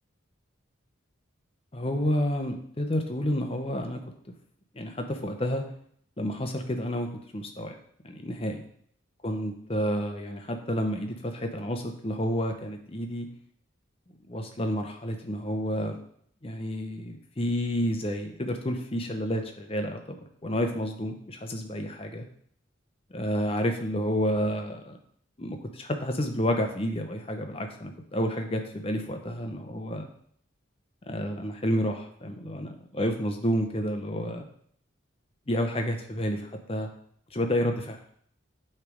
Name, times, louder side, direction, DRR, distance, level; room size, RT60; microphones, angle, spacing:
voice 1, 1.7-4.0 4.7-5.6 6.2-7.8 8.0-8.6 9.2-13.3 14.3-16.0 16.4-22.3 23.1-25.0 25.4-30.1 31.1-34.5 35.5-36.9 37.3-38.0, equal, 30° left, 5 dB, 0.7 m, -30 dB
7.9 x 3.3 x 5.0 m, 0.65 s
head